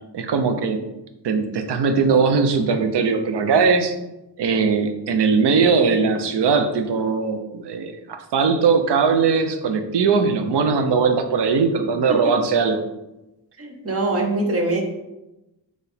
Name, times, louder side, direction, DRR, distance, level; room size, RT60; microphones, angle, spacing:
voice 1, 0.1-0.8 1.2-4.0 4.4-12.8, right 5 dB, 85° right, 7 dB, 0.6 m, -20 dB
voice 2, 13.6-14.8, right 2 dB, 35° right, 3 dB, 0.8 m, -23 dB
4.5 x 3.1 x 3.4 m, 0.96 s
wide cardioid pair, 130°, 40 cm